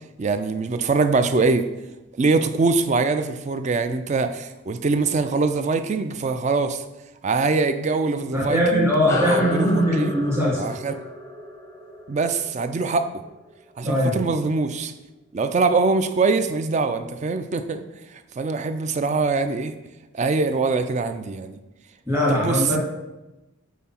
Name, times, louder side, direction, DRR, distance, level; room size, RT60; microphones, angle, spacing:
voice 1, 0.2-1.7 2.2-6.8 7.2-8.9 9.2-10.1 10.6-10.9 12.1-13.2 13.8-14.9 15.3-17.8 18.4-19.7 20.1-21.6 22.3-22.8, right 4 dB, 35° right, 9 dB, 0.3 m, -23 dB
voice 2, 8.3-10.6 13.8-14.2 22.1-22.8, equal, 15° right, -5 dB, 1.5 m, -21 dB
sound 1, 9.1-13.9, left 1 dB, 15° left, 0.6 m, -32 dB
5.6 x 4.1 x 4.3 m, 1.0 s
head